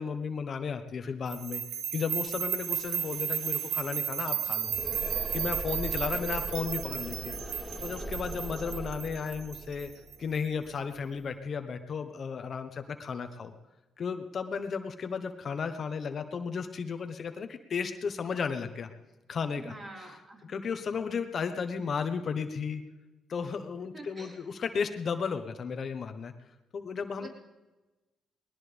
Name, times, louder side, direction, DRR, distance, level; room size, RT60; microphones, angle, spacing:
voice 1, 0.0-1.6 1.9-4.7 5.3-9.9 10.2-13.5 14.0-18.9 19.3-22.8 23.3-26.3 26.7-27.3, left 6 dB, 50° left, 8 dB, 1.2 m, -34 dB
sound 1, 1.3-10.4, right 9 dB, 80° right, 1.1 m, -34 dB
sound 2, 2.3-2.4 2.6-11.4, right 1 dB, 5° right, 2.3 m, -41 dB
voice 2, 19.6-20.4 23.9-24.4 27.2-27.3, right 2 dB, 35° right, -1 dB, 4.5 m, -46 dB
20.0 x 19.0 x 3.5 m, 1.1 s
cardioid pair, 90°, 0 cm